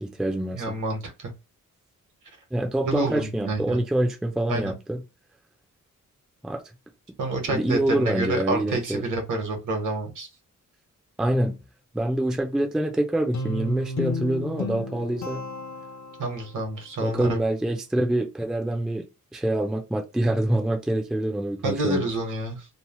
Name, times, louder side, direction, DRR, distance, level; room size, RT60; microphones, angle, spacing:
voice 1, 0.0-0.8 2.5-5.0 6.4-6.6 7.5-9.0 11.2-11.6 11.9-15.5 17.0-19.1 19.3-22.0, right 1 dB, ahead, 0.3 m, -26 dB
voice 2, 0.5-1.3 2.8-3.8 4.5-4.7 7.2-10.3 16.2-17.4 21.6-22.6, right 2 dB, 70° right, 1.1 m, -28 dB
Guitar, 13.3-16.6, left 2 dB, 60° left, 0.6 m, -32 dB
3.0 x 2.0 x 2.9 m
wide cardioid pair, 145°, 32 cm